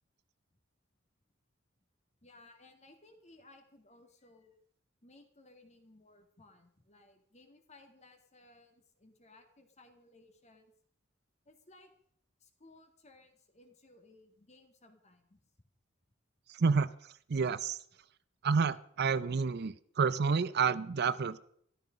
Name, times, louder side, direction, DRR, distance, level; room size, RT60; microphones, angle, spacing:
voice 1, 2.2-4.6 5.0-10.7 11.5-11.9 12.4-15.4, left 2 dB, 35° left, 6 dB, 2.2 m, -60 dB
voice 2, 16.5-17.8 18.4-21.4, right 5 dB, 55° right, 16 dB, 0.5 m, -30 dB
13.5 x 13.0 x 5.2 m, 0.67 s
head